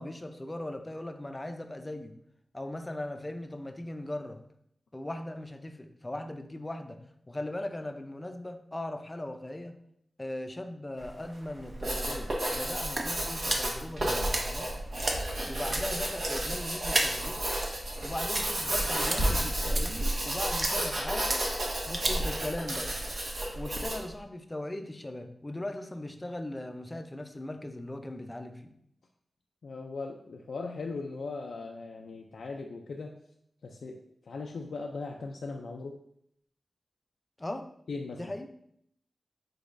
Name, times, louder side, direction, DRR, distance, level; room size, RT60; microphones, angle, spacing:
voice 1, 0.0-2.2 2.5-4.4 4.9-7.0 7.3-9.7 10.2-14.7 15.5-17.5 18.0-21.5 21.9-22.9 23.5-28.7 37.4-37.7 38.1-38.5, left 1 dB, 20° left, 7 dB, 0.4 m, -39 dB
sound 1, 11.0-24.0, right 1 dB, 45° right, 0.6 m, -36 dB
Writing, 11.6-24.1, right 1 dB, 80° right, 1.5 m, -32 dB
voice 2, 29.6-33.1 33.6-36.0 37.9-38.3, left 3 dB, 90° left, 1 dB, 0.3 m, -39 dB
5.0 x 4.0 x 2.5 m, 0.71 s
wide cardioid pair, 95°, 0 cm